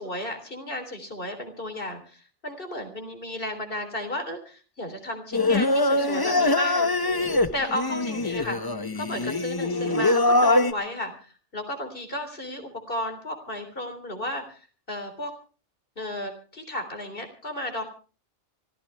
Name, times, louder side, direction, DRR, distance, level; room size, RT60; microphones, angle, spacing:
voice 1, 0.0-6.9 7.5-8.6 9.0-15.3 16.0-17.8, left 1 dB, 50° left, 6 dB, 3.8 m, -33 dB
Singing, 5.3-10.7, left 2 dB, 20° left, 0.8 m, -23 dB
24.5 x 15.5 x 3.4 m, 0.37 s
omnidirectional pair, 1.2 m